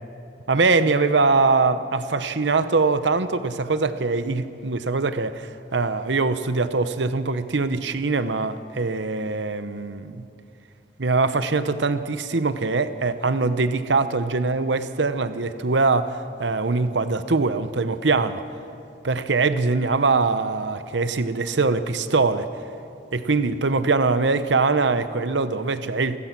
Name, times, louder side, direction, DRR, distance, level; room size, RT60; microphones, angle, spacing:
voice 1, 0.5-10.2 11.0-18.4 19.0-22.5 23.1-26.2, right 3 dB, 70° right, 12 dB, 0.8 m, -22 dB
28.0 x 16.0 x 6.0 m, 2.6 s
head